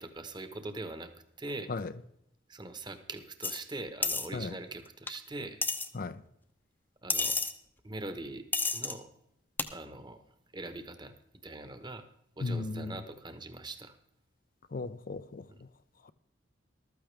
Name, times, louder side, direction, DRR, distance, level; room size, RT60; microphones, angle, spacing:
voice 1, 0.0-1.7 2.5-5.6 7.0-7.4 7.8-8.5 8.7-9.1 9.7-10.2 10.5-11.1 11.4-12.1 12.4-14.0 15.5-15.6, right 2 dB, 25° right, 1.1 m, -42 dB
sound 1, 3.4-3.6 4.0-4.3 5.1-5.2 5.6-5.9 7.1-7.5 8.5-8.9 9.6-9.7, left 3 dB, 10° left, 0.7 m, -30 dB
voice 2, 12.4-13.0 14.7-15.7, left 3 dB, 50° left, 0.5 m, -36 dB
14.5 x 13.0 x 3.4 m
head